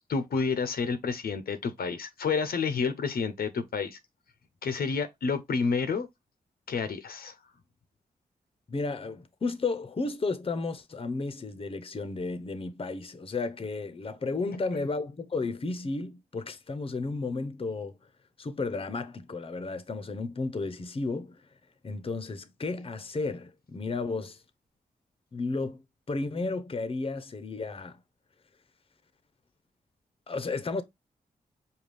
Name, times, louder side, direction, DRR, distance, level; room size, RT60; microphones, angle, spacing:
voice 1, 0.1-4.0 4.6-6.1 6.7-7.3, left 5 dB, 75° left, 0.7 m, -29 dB
voice 2, 8.7-18.0 18.4-21.4 21.8-24.4 25.3-25.8 26.1-28.0 30.3-30.8, left 3 dB, 35° left, 0.7 m, -33 dB
5.2 x 2.3 x 3.2 m
cardioid pair, 55°, 16 cm